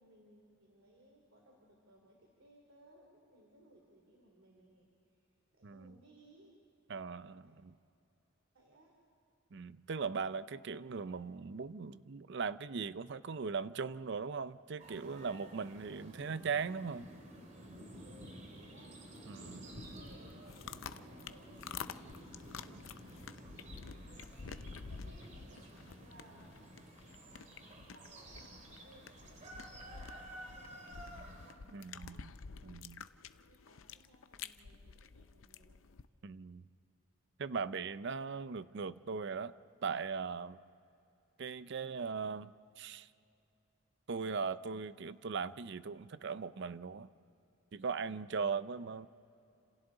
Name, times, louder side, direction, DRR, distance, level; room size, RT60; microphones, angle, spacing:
voice 1, 0.0-6.6 7.4-7.6 8.5-8.9 18.0-23.1 23.9-26.5 27.3-31.1 31.5-32.2 33.1-35.8, right 1 dB, 80° right, -1 dB, 3.1 m, -64 dB
voice 2, 5.6-6.0 6.9-7.8 9.5-17.1 19.3-19.6 31.7-32.3 32.6-33.0 36.2-36.6 37.4-39.5 39.8-40.6 41.4-43.1 44.1-47.1 47.7-49.1, right 5 dB, 60° right, 15 dB, 0.5 m, -39 dB
sound 1, 14.8-31.5, right 1 dB, 40° right, 2.4 m, -52 dB
sound 2, 19.5-36.1, left 6 dB, 75° left, 0.6 m, -50 dB
30.0 x 27.0 x 3.9 m, 2.7 s
head